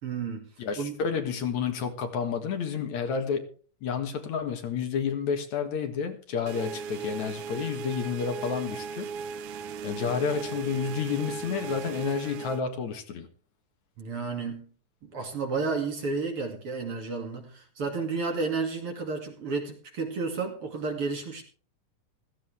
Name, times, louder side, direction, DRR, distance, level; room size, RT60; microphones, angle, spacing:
voice 1, 0.0-0.5 0.8-1.0 14.0-14.7 15.0-21.4, right 4 dB, 45° right, 2.9 m, -32 dB
voice 2, 0.6-3.5 3.8-9.3 9.8-13.3, left 6 dB, 65° left, 2.8 m, -30 dB
sound 1, 6.5-12.6, right 5 dB, 75° right, 2.1 m, -37 dB
15.5 x 15.0 x 3.4 m
omnidirectional pair, 3.7 m